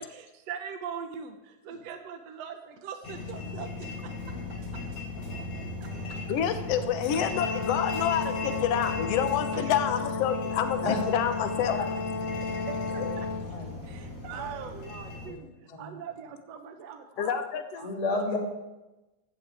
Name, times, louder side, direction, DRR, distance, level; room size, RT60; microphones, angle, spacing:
voice 1, 0.0-4.9 5.8-5.9 9.5-9.6 12.4-13.3 13.8-17.4 17.8-17.9, right 7 dB, 70° right, 5 dB, 1.6 m, -41 dB
sound 1, 3.0-15.3, left 3 dB, 50° left, 5.4 m, -38 dB
sound 2, 4.2-9.4, right 1 dB, 25° right, 3.4 m, -43 dB
voice 2, 6.0-11.8 14.1-14.2 17.2-17.9, left 9 dB, 85° left, 8 dB, 1.3 m, -28 dB
Brass instrument, 7.1-13.4, left 4 dB, 70° left, 2.8 m, -33 dB
voice 3, 17.8-18.4, left 3 dB, 15° left, 0 dB, 1.6 m, -30 dB
17.0 x 14.5 x 3.5 m, 1.0 s
omnidirectional pair, 4.2 m